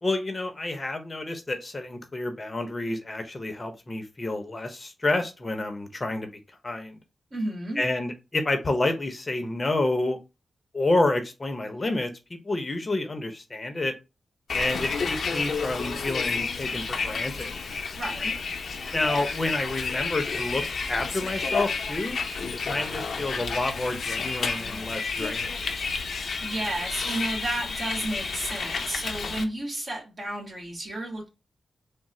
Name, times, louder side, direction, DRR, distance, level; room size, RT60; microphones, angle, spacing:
voice 1, 0.0-6.3 6.6-7.0 7.8-10.2 10.7-13.9 14.5-17.5 18.9-20.6 20.9-22.2 22.6-25.6, left 2 dB, 35° left, 0.7 m, -29 dB
voice 2, 7.3-7.8 18.0-18.3 26.1-31.3, right 1 dB, 45° right, 1.6 m, -32 dB
Bus, 14.5-29.4, left 4 dB, 70° left, 0.6 m, -31 dB
3.6 x 2.0 x 3.1 m
cardioid pair, 70°, 0 cm